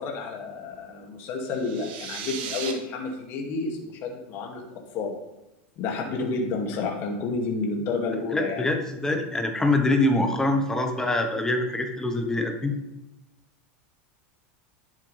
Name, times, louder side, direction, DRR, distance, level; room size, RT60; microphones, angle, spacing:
voice 1, 0.0-5.2 5.8-8.6, left 3 dB, 45° left, 1 dB, 2.2 m, -30 dB
sound 1, 1.5-2.7, right 7 dB, 75° right, 2.1 m, -36 dB
voice 2, 8.3-12.8, left 2 dB, 10° left, 5 dB, 1.2 m, -24 dB
11.0 x 10.0 x 3.4 m, 0.91 s
supercardioid pair, 150°, 6 cm